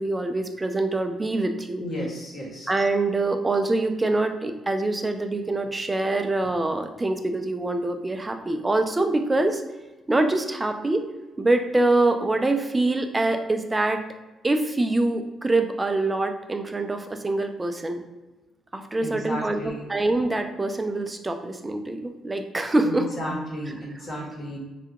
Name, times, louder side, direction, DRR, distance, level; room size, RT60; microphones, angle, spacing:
voice 1, 0.0-1.8 2.7-9.6 10.1-11.0 11.4-14.0 14.4-18.0 18.7-23.1, right 2 dB, 20° right, 6 dB, 0.4 m, -24 dB
voice 2, 1.8-2.7 19.0-19.9 22.8-24.6, equal, 50° left, -3 dB, 1.5 m, -33 dB
3.3 x 2.8 x 3.6 m, 1.1 s
cardioid pair, 90°, 0 cm